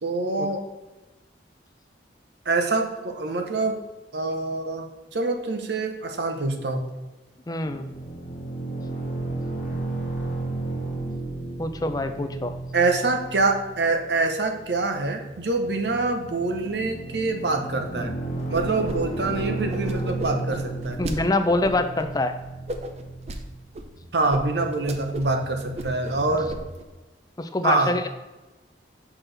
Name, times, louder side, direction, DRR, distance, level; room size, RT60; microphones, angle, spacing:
voice 1, 0.0-0.7 2.4-3.8 4.1-4.9 5.1-6.8 12.7-18.1 18.5-21.0 24.1-26.5 27.6-28.1, right 3 dB, 65° right, 5 dB, 0.9 m, -25 dB
voice 2, 7.5-7.9 11.6-12.5 21.0-22.4 27.4-28.1, left 2 dB, 20° left, 8 dB, 0.4 m, -25 dB
sound 1, 7.6-26.6, right 2 dB, 45° left, 1.2 m, -34 dB
sound 2, 18.5-19.0 19.2-21.2 21.6-22.0 22.7-23.4 23.7-23.8 24.3-24.4 24.7-25.3 25.6-26.2 26.5-26.8, right 1 dB, 35° right, 0.6 m, -35 dB
6.2 x 6.0 x 3.3 m, 1.1 s
head